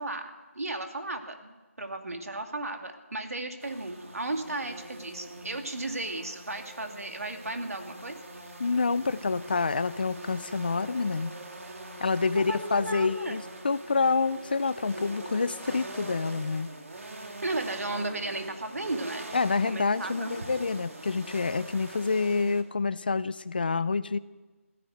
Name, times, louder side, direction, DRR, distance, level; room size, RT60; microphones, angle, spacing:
voice 1, 0.0-8.2 12.3-13.4 17.4-19.3 19.6-20.3, right 2 dB, 85° right, 5 dB, 2.4 m, -35 dB
sound 1, 3.6-22.6, right 2 dB, 70° right, 2.7 m, -43 dB
voice 2, 8.6-11.3 12.0-16.7 19.3-24.2, left 4 dB, 40° left, 17 dB, 0.5 m, -27 dB
16.0 x 11.5 x 7.9 m, 1.2 s
figure-of-eight pair, 170°, 8 cm